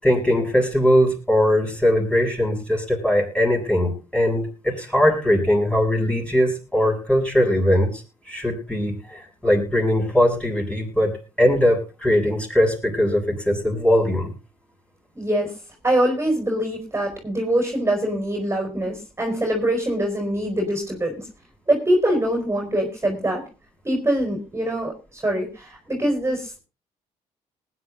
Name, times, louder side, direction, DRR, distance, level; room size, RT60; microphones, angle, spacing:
voice 1, 0.0-8.0 8.3-11.1 11.4-14.3, left 1 dB, 10° left, 0 dB, 7.4 m, -20 dB
voice 2, 15.1-15.5 15.8-21.3 21.7-23.4 23.8-26.6, right 1 dB, 20° right, 2 dB, 5.0 m, -23 dB
20.0 x 9.8 x 3.9 m, 0.31 s
supercardioid pair, 60°, 15 cm